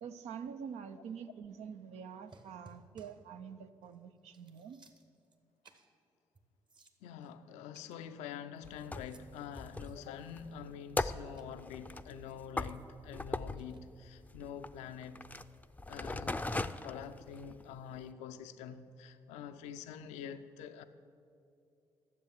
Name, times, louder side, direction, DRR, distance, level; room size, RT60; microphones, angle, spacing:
voice 1, 0.0-4.8, right 7 dB, 70° right, 0.6 m, -46 dB
sound 1, 2.3-3.3 3.8-3.9 4.2-5.4 5.6-5.9 6.3-6.4 6.7-7.3 7.7-8.6 8.9-9.3 9.7-10.7 11.4-11.5 12.1-13.1 13.6-13.8, right 3 dB, 40° right, 1.3 m, -62 dB
voice 2, 7.0-15.3 15.9-20.8, left 8 dB, 80° left, 0.5 m, -46 dB
sound 2, 8.6-17.7 18.1-18.2, left 2 dB, 15° left, 0.5 m, -39 dB
12.0 x 7.5 x 7.4 m
hypercardioid pair, 45°, 12 cm